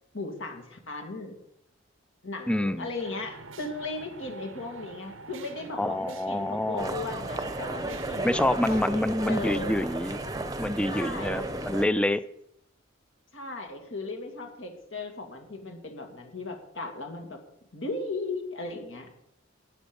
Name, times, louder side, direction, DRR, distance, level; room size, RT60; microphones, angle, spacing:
voice 1, 0.1-1.4 2.2-9.8 10.9-11.5 13.3-17.4 17.7-19.2, left 3 dB, 70° left, 3 dB, 2.5 m, -37 dB
voice 2, 2.5-2.9 5.8-7.0 8.2-10.2 10.6-12.2, left 1 dB, 5° left, 14 dB, 0.4 m, -27 dB
sound 1, 3.0-10.4, right 4 dB, 90° right, 0.8 m, -46 dB
sound 2, 6.8-11.9, right 2 dB, 20° right, 0.8 m, -33 dB
13.5 x 9.3 x 5.4 m, 0.80 s
head